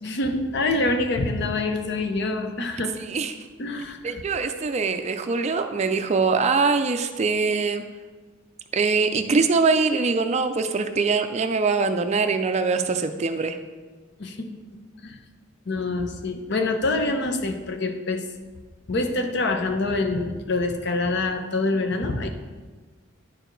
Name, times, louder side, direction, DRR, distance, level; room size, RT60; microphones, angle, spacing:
voice 1, 0.0-2.9 3.6-4.2 14.2-14.5 15.0-15.2 15.7-18.3 18.9-22.3, left 2 dB, 55° left, 6 dB, 0.7 m, -26 dB
voice 2, 3.0-3.3 4.0-7.8 8.7-13.6, right 4 dB, 35° right, 8 dB, 0.4 m, -23 dB
9.9 x 4.6 x 3.9 m, 1.4 s
head